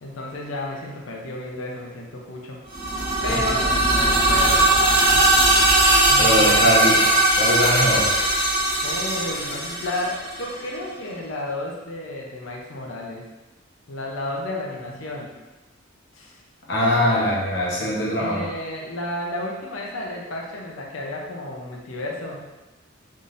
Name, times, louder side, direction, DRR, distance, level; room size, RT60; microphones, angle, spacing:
voice 1, 0.0-2.6 3.2-5.3 5.8-7.1 8.8-13.3 13.9-15.3 16.1-16.4 17.1-17.3 18.1-22.5, left 1 dB, 80° left, -1 dB, 0.6 m, -32 dB
sound 1, 2.7-10.5, right 1 dB, 35° right, 1.3 m, -19 dB
voice 2, 6.2-7.0 7.4-8.1 16.7-18.4, equal, 60° left, -4 dB, 1.0 m, -21 dB
3.9 x 3.6 x 2.5 m, 1.1 s
head